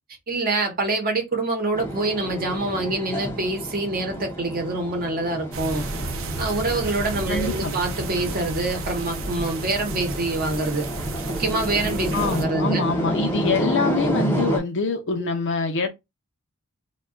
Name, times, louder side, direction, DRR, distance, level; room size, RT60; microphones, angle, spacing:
voice 1, 0.3-5.8 6.4-10.8 11.3-12.8 15.2-15.3, right 2 dB, 40° right, 0.8 m, -26 dB
sound 1, 1.7-14.6, equal, 10° left, 0.6 m, -30 dB
sound 2, 5.5-12.5, right 2 dB, 60° right, 0.5 m, -32 dB
voice 2, 7.3-7.7 12.1-15.9, left 4 dB, 55° left, 0.6 m, -25 dB
2.3 x 2.2 x 3.6 m
head